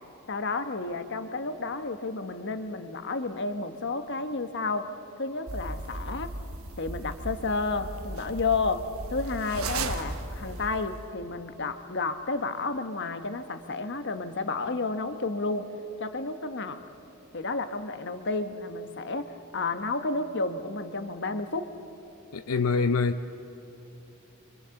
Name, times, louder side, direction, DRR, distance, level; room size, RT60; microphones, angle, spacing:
voice 1, 0.3-4.9 5.2-6.3 6.8-15.7 16.0-16.8 17.3-21.8, left 3 dB, 55° left, 1.2 m, -31 dB
sound 1, 5.5-11.1, right 2 dB, 75° right, 1.4 m, -36 dB
voice 2, 22.3-23.4, left 4 dB, 85° left, 0.7 m, -26 dB
28.5 x 25.0 x 7.1 m
head